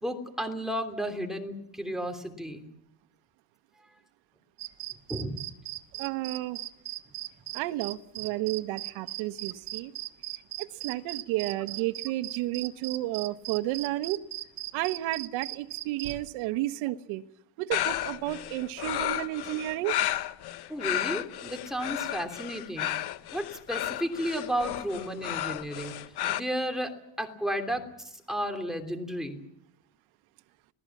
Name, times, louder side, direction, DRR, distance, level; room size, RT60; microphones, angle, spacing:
voice 1, 0.0-2.7 5.1-5.5 20.7-22.9 23.3-25.9 26.3-26.9 27.2-29.4, equal, ahead, 6 dB, 3.1 m, -33 dB
sound 1, 4.6-16.3, right 16 dB, 60° right, 1.7 m, -38 dB
voice 2, 6.0-6.6 7.5-9.9 10.6-14.2 14.7-17.2 17.6-20.0, right 16 dB, 85° right, 8 dB, 1.3 m, -32 dB
sound 2, 17.7-26.4, left 13 dB, 55° left, 1.1 m, -32 dB
26.0 x 19.0 x 7.3 m, 0.76 s
cardioid pair, 125°, 46 cm